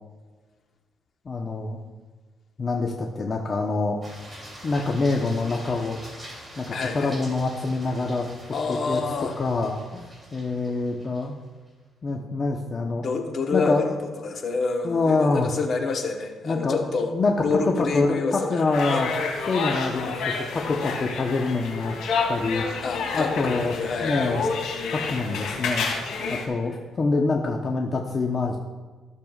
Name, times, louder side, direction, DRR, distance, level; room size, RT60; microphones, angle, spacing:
voice 1, 1.2-1.8 2.6-4.1 4.6-6.0 6.6-8.3 8.7-9.0 9.4-10.1 10.3-11.4 12.0-13.0 13.5-14.0 14.8-15.5 16.4-17.3 17.6-19.1 19.5-21.9 22.3-22.7 23.1-23.7 24.0-24.4 24.9-25.9 26.3-28.6, left 3 dB, 40° left, 1 dB, 0.9 m, -25 dB
sound 1, 4.0-11.7, equal, 15° right, 3.0 m, -44 dB
voice 2, 6.7-7.2 8.5-9.4 13.0-17.1 17.4-18.6 18.9-19.0 22.8-25.1 26.2-26.4, left 4 dB, 55° left, 3 dB, 1.2 m, -28 dB
sound 2, 18.7-26.5, left 4 dB, 85° left, 2.1 m, -29 dB
15.0 x 6.8 x 2.4 m, 1.4 s
cardioid pair, 90°, 0 cm